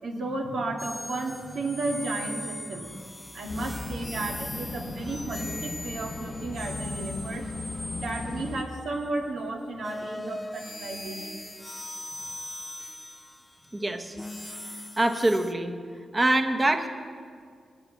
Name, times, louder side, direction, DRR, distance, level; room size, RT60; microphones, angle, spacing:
voice 1, 0.0-3.1 3.3-7.5 8.0-11.3, right 2 dB, 85° right, 0 dB, 2.3 m, -33 dB
sound 1, 0.8-9.1 9.8-15.5, left 1 dB, 10° left, 0.5 m, -40 dB
sound 2, 3.5-8.6, left 3 dB, 40° left, 0.8 m, -37 dB
voice 2, 13.7-14.2 15.0-15.7 16.1-16.9, right 1 dB, 20° right, 5 dB, 1.1 m, -24 dB
20.0 x 8.9 x 7.9 m, 2.1 s
wide cardioid pair, 135°, 0 cm